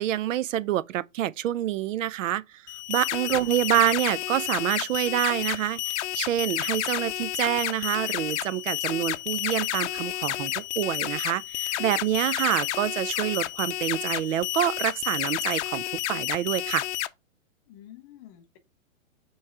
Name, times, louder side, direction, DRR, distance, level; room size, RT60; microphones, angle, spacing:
voice 1, 0.0-2.6 2.9-16.9, right 12 dB, 70° right, 0.6 m, -27 dB
sound 1, 2.7-17.1, left 15 dB, 60° left, 0.6 m, -30 dB
Crowd / Fireworks, 3.2-10.6, right 5 dB, 35° right, 4.2 m, -55 dB
voice 2, 17.7-18.6, left 12 dB, 15° left, 0.3 m, -49 dB
6.9 x 3.1 x 4.8 m
hypercardioid pair, 135°, 40 cm